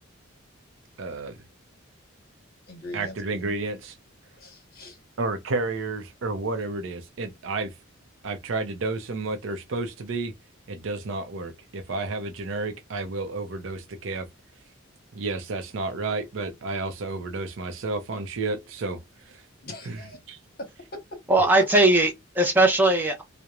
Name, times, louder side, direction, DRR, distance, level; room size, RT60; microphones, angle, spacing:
voice 1, 1.0-1.4 2.9-4.0 5.2-7.7 8.2-10.3 10.7-14.3 15.1-19.0 19.2-19.4 19.9-20.0 20.3-20.4, right 3 dB, 65° right, 0.5 m, -31 dB
voice 2, 2.7-3.1 4.3-5.0 19.6-20.2 20.6-21.0, left 1 dB, 50° left, 1.0 m, -40 dB
voice 3, 21.3-23.2, right 2 dB, 10° right, 0.4 m, -19 dB
2.9 x 2.0 x 2.3 m
head